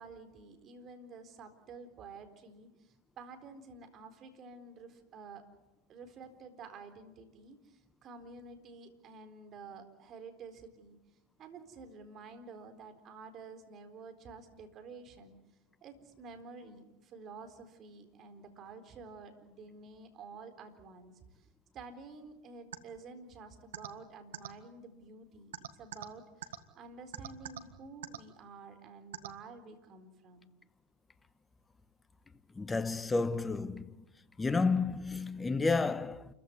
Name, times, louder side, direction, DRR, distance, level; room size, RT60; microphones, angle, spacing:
voice 1, 0.0-5.4 5.9-11.0 11.4-15.4 15.8-21.5 21.7-30.5, right 4 dB, 40° right, 4.2 m, -50 dB
sound 1, 22.7-22.8 23.7-23.9 24.3-24.5 25.5-26.1 26.4-26.6 27.1-27.6 28.0-28.2 29.1-29.3, right 12 dB, 80° right, 1.6 m, -40 dB
voice 2, 32.6-33.9 34.4-36.3, left 4 dB, 15° left, 1.1 m, -31 dB
28.5 x 15.0 x 9.6 m
hypercardioid pair, 95°, 0 cm